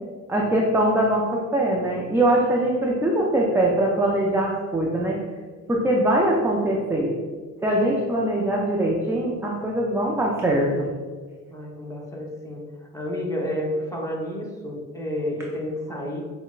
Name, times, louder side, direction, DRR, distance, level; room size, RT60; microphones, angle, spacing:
voice 1, 0.3-5.2 5.7-7.1 7.6-10.9, right 1 dB, 10° right, -2 dB, 0.4 m, -22 dB
voice 2, 11.5-12.6 12.9-16.2, left 1 dB, 10° left, -2 dB, 0.8 m, -30 dB
5.7 x 2.1 x 2.4 m, 1.5 s
cardioid pair, 90°, 30 cm